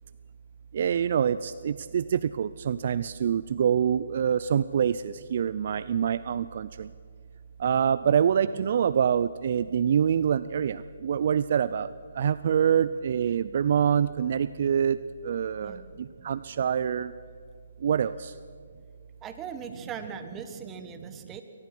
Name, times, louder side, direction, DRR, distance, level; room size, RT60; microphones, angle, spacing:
voice 1, 0.7-6.9 7.6-11.9 12.2-15.0 15.2-17.1 17.8-18.3, right 8 dB, 50° right, 16 dB, 0.4 m, -25 dB
voice 2, 19.2-21.4, right 7 dB, 15° right, 8 dB, 1.5 m, -39 dB
23.0 x 18.5 x 6.1 m, 2.1 s
hypercardioid pair, 150°, 0 cm